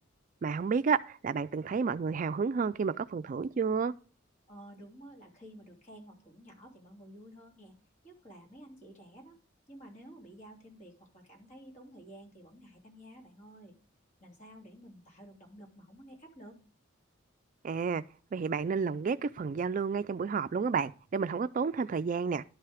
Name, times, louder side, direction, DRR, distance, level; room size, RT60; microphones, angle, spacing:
voice 1, 0.4-3.9 17.6-18.0 18.3-22.4, right 5 dB, 40° right, 0.3 m, -31 dB
voice 2, 4.5-7.7 8.0-9.3 9.7-13.8 14.2-16.6, equal, 40° left, 2.9 m, -52 dB
11.5 x 5.7 x 5.0 m
head